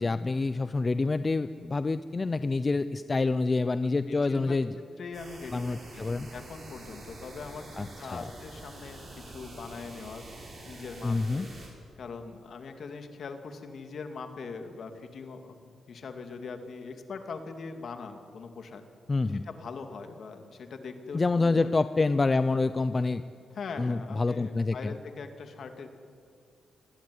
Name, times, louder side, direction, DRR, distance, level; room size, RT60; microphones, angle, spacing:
voice 1, 0.0-4.7 5.5-6.3 7.8-8.3 11.0-11.5 19.1-19.4 21.1-23.2 23.8-24.9, left 3 dB, 20° left, 12 dB, 0.6 m, -27 dB
voice 2, 4.1-4.6 5.0-11.5 12.0-15.5 15.9-18.8 19.4-21.7 23.5-25.9, left 4 dB, 50° left, 6 dB, 2.7 m, -42 dB
sound 1, 5.1-11.7, right 2 dB, 35° right, 6.7 m, -46 dB
27.5 x 21.0 x 9.6 m, 2.4 s
wide cardioid pair, 165°, 0 cm